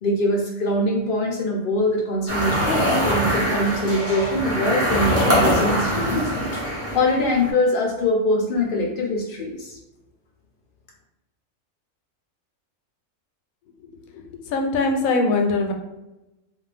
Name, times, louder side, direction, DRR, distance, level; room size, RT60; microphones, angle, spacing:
voice 1, 0.0-6.6 6.9-9.8, left 1 dB, 65° left, -1 dB, 0.5 m, -23 dB
sound 1, 2.3-7.5, equal, 15° right, 0.5 m, -23 dB
voice 2, 14.1-15.7, left 3 dB, 90° left, 3 dB, 1.0 m, -22 dB
2.5 x 2.3 x 3.2 m, 0.97 s
omnidirectional pair, 1.4 m